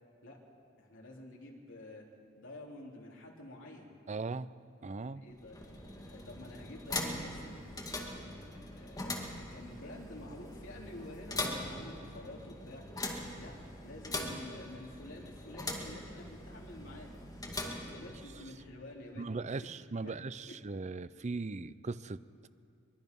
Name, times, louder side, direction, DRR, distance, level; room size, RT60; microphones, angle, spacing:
voice 1, 0.8-2.0 2.4-3.9 5.0-12.8 13.4-13.5 13.8-17.2 17.4-17.5 17.9-19.8 20.0-20.2 20.5-20.6, left 1 dB, 65° left, -1 dB, 3.4 m, -49 dB
voice 2, 4.1-4.5 4.8-5.3 19.2-22.5, right 3 dB, 35° right, 15 dB, 0.5 m, -39 dB
sound 1, 5.3-18.6, left 2 dB, 20° left, 2.2 m, -42 dB
24.0 x 21.5 x 5.4 m, 2.3 s
head